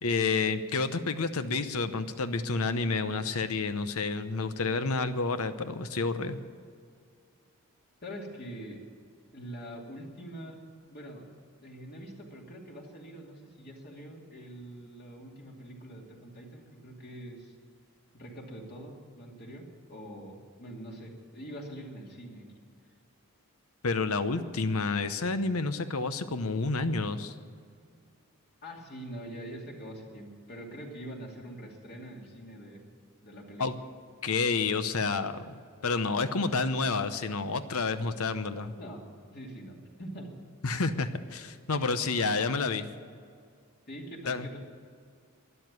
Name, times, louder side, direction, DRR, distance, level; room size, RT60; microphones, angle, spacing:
voice 1, 0.0-6.4 23.8-27.3 33.6-33.7 34.2-35.6 35.8-38.7 40.6-42.9 44.3-44.5, left 4 dB, 70° left, 10 dB, 0.9 m, -29 dB
voice 2, 8.0-8.8 9.3-10.6 10.9-11.3 11.6-17.5 18.1-22.5 28.6-32.8 33.2-33.7 38.8-39.0 39.3-40.4 43.9-44.6, right 1 dB, 45° left, 0 dB, 2.5 m, -44 dB
12.5 x 11.0 x 9.6 m, 2.2 s
head